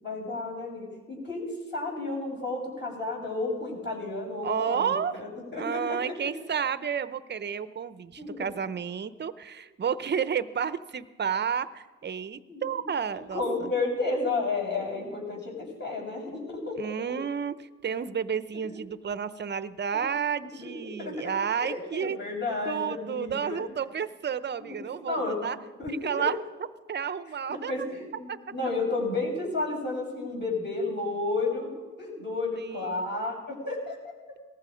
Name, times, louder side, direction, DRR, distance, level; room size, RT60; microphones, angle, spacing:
voice 1, 0.0-6.1 8.2-8.4 12.5-12.6 13.3-16.8 18.5-18.8 19.9-20.0 20.6-21.3 21.6-23.6 24.8-25.4 25.8-26.3 27.5-31.7 32.0-33.3 33.7-34.0, left 3 dB, 35° left, -2 dB, 7.1 m, -32 dB
voice 2, 4.4-5.1 5.5-13.7 16.8-22.2 22.6-25.6 25.9-26.4 26.9-27.7 28.3-28.4 32.6-33.1, right 7 dB, 35° right, 14 dB, 0.8 m, -31 dB
19.5 x 14.5 x 5.1 m, 1.2 s
cardioid pair, 90°, 30 cm